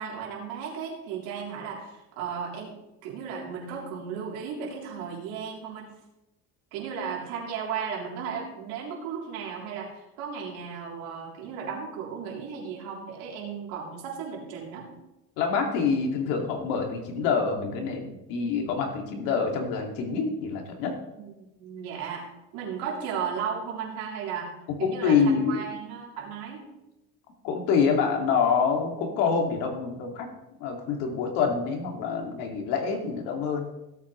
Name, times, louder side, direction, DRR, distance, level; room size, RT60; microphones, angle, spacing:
voice 1, 0.0-5.9 6.7-14.9 21.2-22.3 22.5-24.5 24.8-26.7, right 6 dB, 90° right, -2 dB, 3.6 m, -35 dB
voice 2, 15.4-20.9 24.8-25.6 27.4-30.3 30.6-33.7, left 5 dB, 85° left, 2 dB, 2.5 m, -26 dB
17.0 x 8.6 x 3.3 m, 0.94 s
cardioid pair, 120°, 33 cm